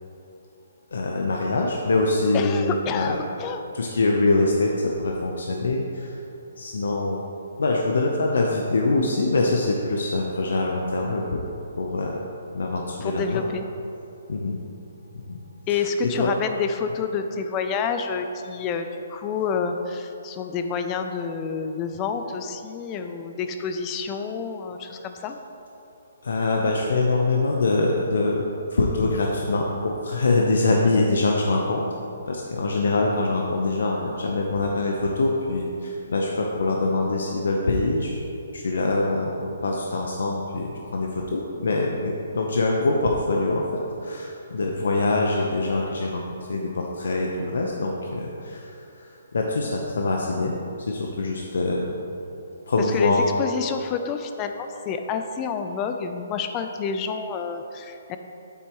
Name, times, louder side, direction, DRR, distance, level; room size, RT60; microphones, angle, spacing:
voice 1, 0.9-3.2 3.7-6.2 6.6-7.2 7.6-11.4 11.8-12.1 12.5-13.4 14.3-14.6 15.3-15.4 15.7-16.3 26.2-28.4 28.7-31.8 32.3-38.2 38.5-46.2 46.5-50.5 50.8-51.9 52.7-53.2, left 2 dB, 80° left, 0 dB, 0.8 m, -24 dB
voice 2, 2.3-3.6 13.0-13.7 15.7-25.4 52.8-58.2, left 5 dB, 20° left, 7 dB, 0.4 m, -28 dB
9.1 x 8.1 x 3.1 m, 2.8 s
hypercardioid pair, 165°, 0 cm